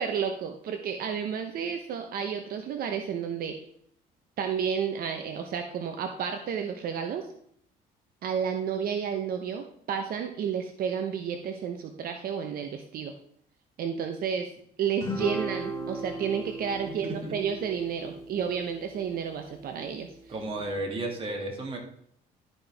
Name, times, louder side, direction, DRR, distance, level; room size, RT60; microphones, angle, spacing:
voice 1, 0.0-3.6 4.4-7.3 8.2-13.1 13.8-14.5 14.8-20.3, right 7 dB, 60° right, 5 dB, 0.9 m, -31 dB
Guitar, 15.0-19.6, right 1 dB, 15° left, 3.7 m, -37 dB
voice 2, 17.0-17.3 20.3-21.8, right 2 dB, 35° right, 0 dB, 2.3 m, -33 dB
12.5 x 5.4 x 3.5 m, 0.67 s
cardioid pair, 110°, 17 cm